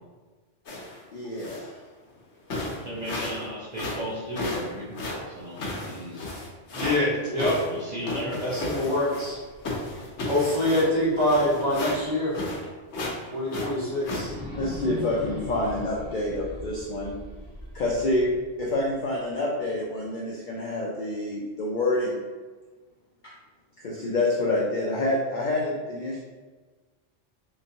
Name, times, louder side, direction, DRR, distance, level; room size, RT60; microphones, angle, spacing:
sound 1, 0.7-1.0 1.4-1.7 2.2-2.3 2.5-3.4 3.7-7.0 7.4-9.4 9.6-12.7 12.9-13.2 13.5-14.2, left 2 dB, 75° left, 1.1 m, -34 dB
voice 1, 1.1-1.8 14.6-17.1 17.7-18.3 18.6-22.2 23.2-23.3 23.8-26.2, left 2 dB, 60° left, -3 dB, 0.5 m, -27 dB
voice 2, 2.8-6.3 7.6-8.4, equal, 40° right, -9 dB, 0.8 m, -35 dB
voice 3, 6.7-7.6 8.4-9.4 10.3-12.3 13.3-14.3, left 1 dB, 25° right, -10 dB, 1.5 m, -25 dB
sound 2, 9.1-12.1 12.5-12.6 14.0-19.1, left 1 dB, 10° left, 0.7 m, -40 dB
3.4 x 2.9 x 2.7 m, 1.3 s
omnidirectional pair, 1.2 m